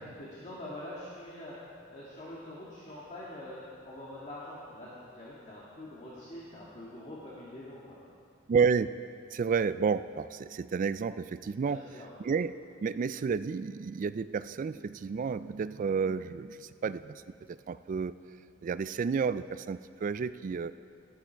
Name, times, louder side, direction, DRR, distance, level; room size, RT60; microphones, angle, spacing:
voice 1, 0.0-8.0 11.5-12.1, left 1 dB, 35° left, -7 dB, 1.8 m, -45 dB
voice 2, 8.5-8.9 9.3-11.8 12.2-12.5 12.8-17.2 17.5-18.2 18.6-20.7, right 5 dB, 40° right, 14 dB, 0.3 m, -31 dB
13.0 x 12.0 x 4.5 m, 2.3 s
head